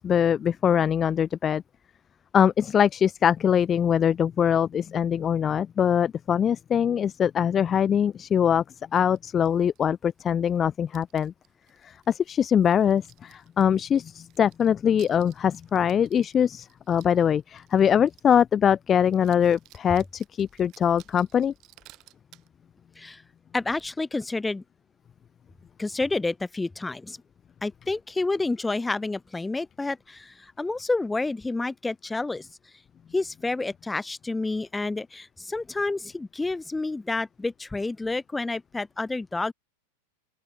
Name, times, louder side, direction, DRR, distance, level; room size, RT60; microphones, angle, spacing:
voice 1, 0.0-1.6 2.3-8.6 8.9-11.3 11.8-21.5, left 8 dB, 25° left, 0.5 m, -23 dB
sound 1, 9.0-10.6 10.9-18.4 18.7-18.8 19.0-22.5, right 17 dB, 35° right, 4.1 m, -57 dB
voice 2, 23.5-24.6 25.8-27.2 27.6-32.5 33.1-39.5, left 3 dB, 10° left, 1.5 m, -29 dB
open air
figure-of-eight pair, 90°, 0 cm